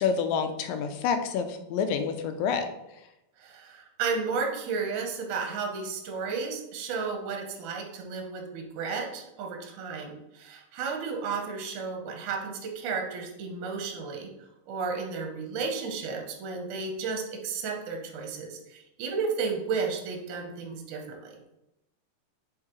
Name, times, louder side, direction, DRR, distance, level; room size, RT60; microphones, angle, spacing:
voice 1, 0.0-2.7, left 6 dB, 85° left, 7 dB, 2.3 m, -28 dB
voice 2, 3.4-14.3 14.7-21.4, right 5 dB, 70° right, 2 dB, 2.3 m, -33 dB
7.2 x 5.4 x 3.1 m, 0.91 s
omnidirectional pair, 3.9 m